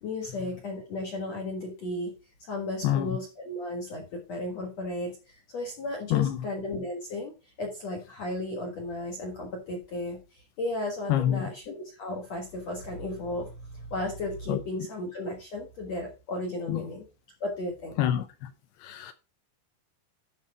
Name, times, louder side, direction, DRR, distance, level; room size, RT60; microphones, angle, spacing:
voice 1, 0.0-2.1 2.5-17.1 17.4-18.0, left 1 dB, 60° left, 1.8 m, -35 dB
voice 2, 2.8-3.2 6.1-6.5 11.1-11.5 14.5-14.6 16.7-16.8 18.0-18.5 18.8-19.1, left 11 dB, 80° left, 2.5 m, -26 dB
12.0 x 4.2 x 4.8 m
omnidirectional pair, 5.3 m